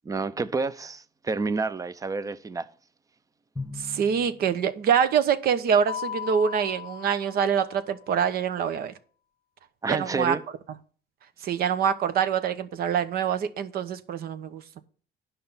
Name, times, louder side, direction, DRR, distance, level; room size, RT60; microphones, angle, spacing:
voice 1, 0.0-2.7 9.8-10.4, right 4 dB, 20° right, 0.6 m, -29 dB
Drum, 3.6-5.3, left 3 dB, 5° left, 1.4 m, -40 dB
voice 2, 3.8-8.9 9.9-10.3 11.4-14.8, right 7 dB, 65° right, 1.0 m, -25 dB
Mallet percussion, 5.9-7.9, left 9 dB, 40° left, 0.4 m, -37 dB
10.0 x 5.6 x 5.6 m
cardioid pair, 110°, 17 cm